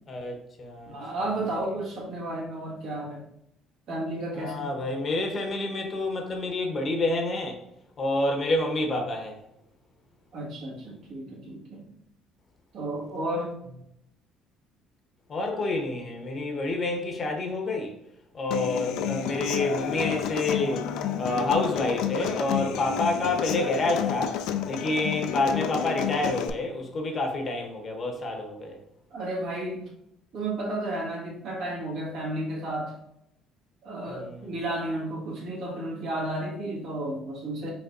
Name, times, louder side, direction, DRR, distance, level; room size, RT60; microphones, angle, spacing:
voice 1, 0.1-0.9 4.3-7.6 8.0-9.4 15.3-18.0 18.3-20.9 21.2-24.4 24.7-28.8 34.1-34.5, left 2 dB, 35° left, 0.8 m, -28 dB
voice 2, 0.8-3.3 3.9-4.7 10.3-11.9 12.7-13.5 29.1-29.8 30.3-32.9 33.8-37.7, right 1 dB, 65° right, 1.6 m, -32 dB
Human voice / Acoustic guitar, 18.5-26.5, left 9 dB, 80° left, 0.4 m, -30 dB
5.2 x 3.4 x 2.5 m
cardioid pair, 130°, 0 cm